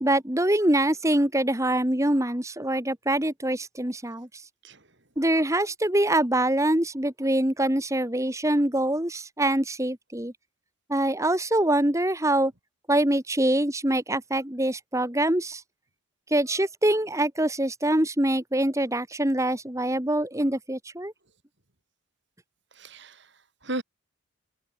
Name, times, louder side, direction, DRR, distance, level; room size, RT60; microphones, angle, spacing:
voice 1, 0.0-4.3 5.2-10.3 10.9-12.5 12.9-15.6 16.3-21.1, right 1 dB, 15° right, 1.7 m, -24 dB
voice 2, 4.6-5.0 22.7-23.8, right 1 dB, 55° right, 4.4 m, -37 dB
head